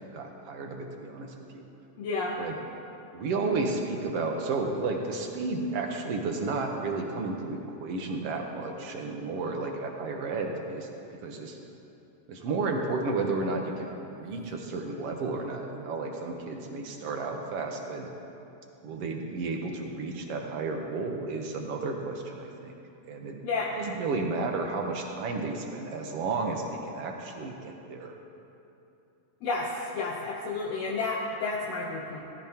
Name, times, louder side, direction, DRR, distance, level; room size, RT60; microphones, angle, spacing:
voice 1, 0.1-1.6 2.4-2.6 3.1-10.9 11.2-11.6 12.3-18.1 18.8-22.8 23.0-23.4 23.8-28.1, right 3 dB, 65° right, 2 dB, 1.9 m, -32 dB
voice 2, 2.0-2.4 23.4-23.7 29.4-29.7 29.9-32.2, left 3 dB, 70° left, -2 dB, 2.0 m, -31 dB
17.5 x 14.0 x 3.0 m, 2.8 s
omnidirectional pair, 3.3 m